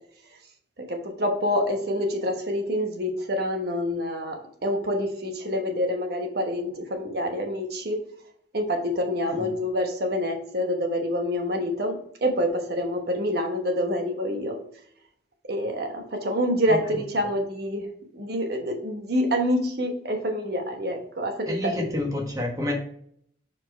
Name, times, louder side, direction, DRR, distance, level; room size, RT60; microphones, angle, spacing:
voice 1, 0.9-8.0 8.5-14.6 15.5-17.9 18.1-22.0, equal, 55° right, 3 dB, 1.1 m, -27 dB
voice 2, 21.5-22.7, left 1 dB, 20° right, 0 dB, 1.2 m, -29 dB
5.0 x 4.4 x 4.4 m, 0.65 s
head